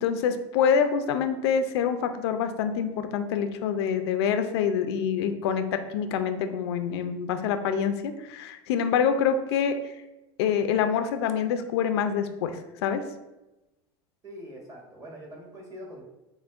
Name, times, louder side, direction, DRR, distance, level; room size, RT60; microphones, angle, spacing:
voice 1, 0.0-9.8 10.4-13.0, left 7 dB, 80° left, 8 dB, 0.4 m, -26 dB
voice 2, 14.2-16.0, equal, 25° right, -3 dB, 1.4 m, -43 dB
5.6 x 2.1 x 2.4 m, 0.98 s
supercardioid pair, 105°, 14 cm